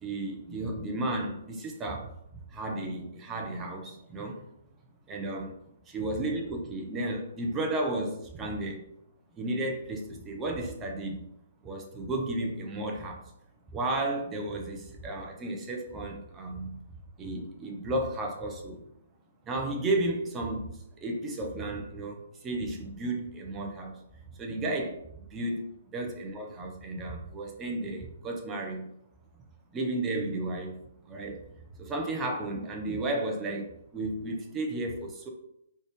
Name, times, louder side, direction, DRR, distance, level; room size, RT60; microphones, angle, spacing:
voice 1, 0.0-2.1 2.5-4.4 5.1-5.5 5.9-8.8 9.4-11.2 11.6-13.2 13.7-16.8 17.2-18.8 19.5-20.7 21.0-24.0 24.4-25.0 25.3-28.9 29.7-30.7 31.1-31.4 31.8-33.7 33.9-35.3, right 2 dB, 20° right, 1 dB, 1.0 m, -33 dB
4.1 x 3.5 x 3.3 m, 0.75 s
hypercardioid pair, 130°, 0 cm